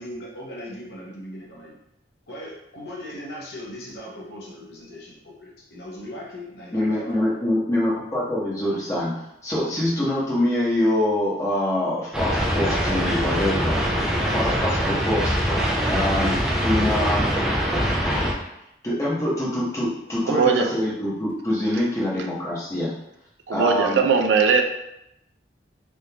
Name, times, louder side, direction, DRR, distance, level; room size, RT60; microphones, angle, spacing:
voice 1, 0.0-1.8 2.3-7.2, equal, 65° left, -4 dB, 0.9 m, -38 dB
voice 2, 6.7-9.1 9.4-13.8 14.3-15.3 15.9-17.3 18.0-18.4 18.8-22.9 23.5-24.0, left 1 dB, 15° left, -7 dB, 0.8 m, -25 dB
sound 1, 12.1-18.3, equal, 5° right, 0.3 m, -23 dB
voice 3, 20.3-20.7 23.5-24.6, right 5 dB, 85° right, 4 dB, 0.4 m, -19 dB
3.5 x 2.5 x 2.8 m, 0.84 s
head